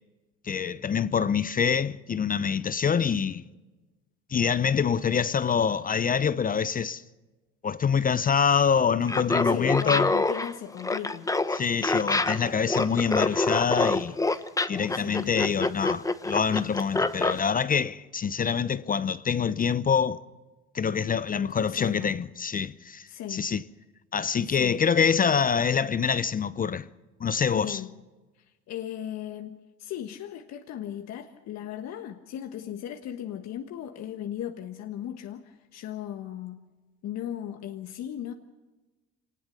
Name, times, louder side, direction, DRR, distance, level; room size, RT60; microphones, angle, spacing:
voice 1, 0.4-3.4 4.3-7.0 7.6-10.1 11.5-14.2 14.7-20.2 20.7-23.6 24.1-26.9 27.2-27.8, left 6 dB, 25° left, 0.7 m, -25 dB
Laughter, 9.0-17.4, left 2 dB, 10° left, 1.0 m, -26 dB
voice 2, 9.4-11.3 14.9-15.2 21.3-22.1 23.1-23.5 24.4-24.8 27.5-27.9 28.3-36.6 37.0-38.3, left 10 dB, 55° left, 1.5 m, -37 dB
25.0 x 19.5 x 6.7 m
supercardioid pair, 80°, 32 cm